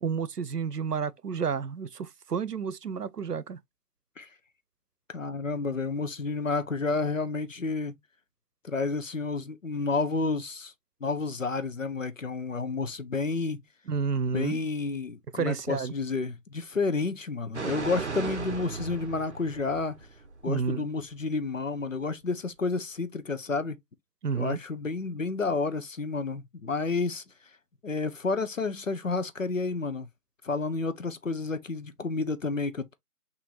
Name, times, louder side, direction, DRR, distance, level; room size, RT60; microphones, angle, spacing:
voice 1, 0.0-3.6 13.9-14.6 15.4-15.9 20.5-20.9 24.2-24.6, right 6 dB, 85° right, 0.7 m, -30 dB
voice 2, 5.1-7.9 8.6-10.7 11.0-13.6 14.3-19.9 20.4-23.8 24.3-27.2 27.8-30.1 30.4-32.9, left 3 dB, 55° left, 0.7 m, -30 dB
sound 1, 17.5-20.5 20.7-20.8, right 4 dB, 45° right, 0.9 m, -36 dB
6.2 x 2.9 x 2.8 m
figure-of-eight pair, 165°, 47 cm